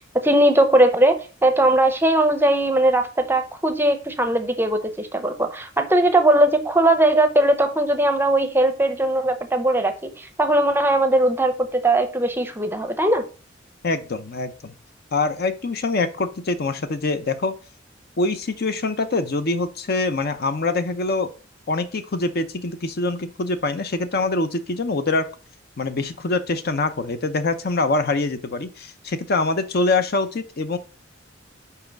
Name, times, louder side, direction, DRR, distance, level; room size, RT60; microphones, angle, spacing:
voice 1, 0.1-13.2, right 1 dB, 10° right, 0.6 m, -19 dB
voice 2, 13.8-14.7 15.1-17.5 18.2-21.3 21.7-25.3 25.8-30.8, left 3 dB, 50° left, 0.6 m, -24 dB
5.6 x 4.7 x 5.1 m
head